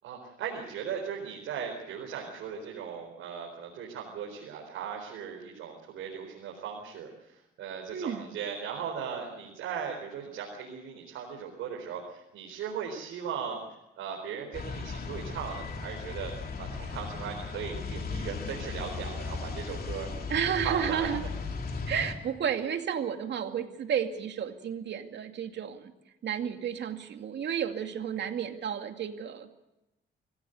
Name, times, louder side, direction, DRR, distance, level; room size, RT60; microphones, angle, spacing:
voice 1, 0.0-13.6 13.9-16.3 16.6-20.1 20.6-21.1, right 7 dB, 85° right, -1 dB, 4.4 m, -38 dB
voice 2, 7.9-8.3 20.3-21.2 21.9-25.9 26.2-29.6, right 8 dB, 65° right, 6 dB, 2.4 m, -32 dB
sound 1, 14.5-22.2, left 4 dB, 50° left, 3.3 m, -37 dB
25.5 x 16.0 x 8.0 m, 0.95 s
cardioid pair, 90°, 20 cm